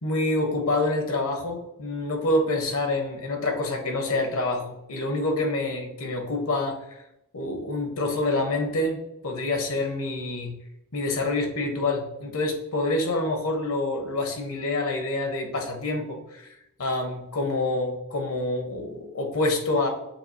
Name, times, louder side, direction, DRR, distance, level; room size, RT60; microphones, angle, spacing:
voice 1, 0.0-6.8 7.3-9.0 9.2-10.5 10.9-16.5 16.8-19.9, left 2 dB, 70° left, 3 dB, 1.0 m, -27 dB
7.2 x 2.4 x 2.8 m, 0.86 s
head